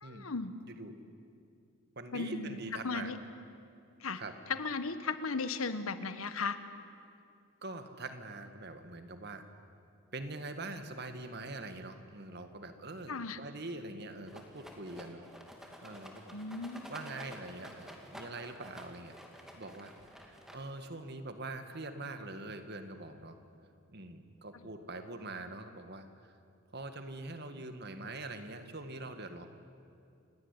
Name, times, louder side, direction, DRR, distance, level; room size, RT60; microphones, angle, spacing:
voice 1, 0.0-0.5 2.1-2.6 2.8-3.2 4.0-4.2 4.5-6.6 13.1-13.4 16.3-16.9, left 4 dB, 80° left, 11 dB, 1.4 m, -36 dB
voice 2, 2.0-3.1 4.1-4.4 7.6-9.5 10.1-15.2 15.8-16.4 16.9-19.2 19.5-19.9 20.3-23.4 23.9-26.3 26.7-29.5, right 2 dB, 50° right, 8 dB, 1.9 m, -43 dB
Rattle, 14.3-20.9, equal, ahead, 2.5 m, -51 dB
29.5 x 17.5 x 10.0 m, 2.5 s
head